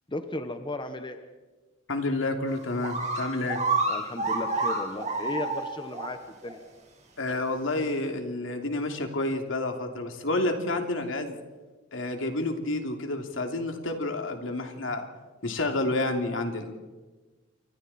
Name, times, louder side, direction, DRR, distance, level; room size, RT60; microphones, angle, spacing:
voice 1, 0.1-1.2 3.9-6.6, left 1 dB, 25° left, 8 dB, 1.2 m, -35 dB
voice 2, 1.9-3.6 7.2-11.4 11.9-15.1 15.4-16.8, left 2 dB, 85° left, 4 dB, 2.9 m, -29 dB
sound 1, 2.5-2.6 2.8-6.1 6.5-6.6 7.3-7.4, right 3 dB, 35° right, 4.6 m, -29 dB
28.0 x 24.5 x 4.3 m, 1.3 s
head